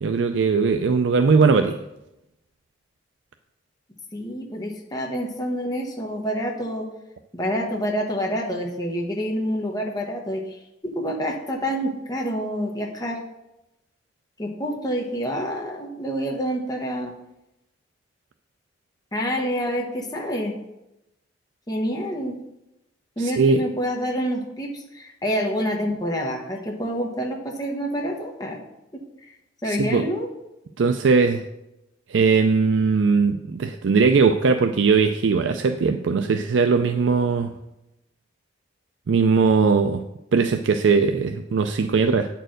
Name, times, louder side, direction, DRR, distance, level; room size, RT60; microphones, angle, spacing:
voice 1, 0.0-1.8 23.2-23.6 29.7-30.0 30.8-31.4 32.1-37.5 39.1-40.0 40.3-42.3, right 4 dB, 75° right, 7 dB, 0.4 m, -19 dB
voice 2, 4.1-6.9 7.3-10.6 10.8-13.2 14.4-17.1 19.1-20.6 21.7-22.3 23.2-28.6 28.9-29.3 29.6-30.3, equal, 20° left, 0 dB, 1.1 m, -27 dB
8.9 x 4.5 x 6.3 m, 0.90 s
head